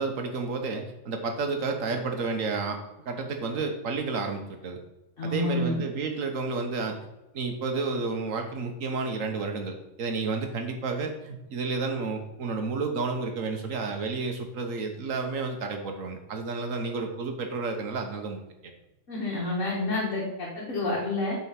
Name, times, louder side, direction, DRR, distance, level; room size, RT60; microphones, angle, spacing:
voice 1, 0.0-2.8 3.0-4.8 5.2-7.0 7.3-18.7, right 4 dB, 65° right, 5 dB, 1.5 m, -31 dB
voice 2, 5.2-5.8 19.1-21.4, left 2 dB, 65° left, -5 dB, 2.0 m, -29 dB
7.9 x 4.5 x 5.8 m, 0.98 s
omnidirectional pair, 1.5 m